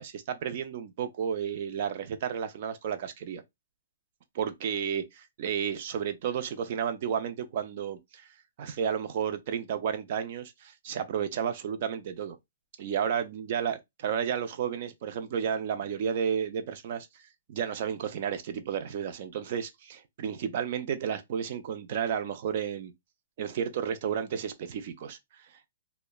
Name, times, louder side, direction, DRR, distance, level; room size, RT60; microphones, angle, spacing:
voice 1, 0.0-3.4 4.3-8.3 8.6-12.4 12.8-17.1 17.5-22.9 23.4-25.2, right 8 dB, 45° right, 0.4 m, -32 dB
2.8 x 2.1 x 2.2 m
hypercardioid pair, 160°, 0 cm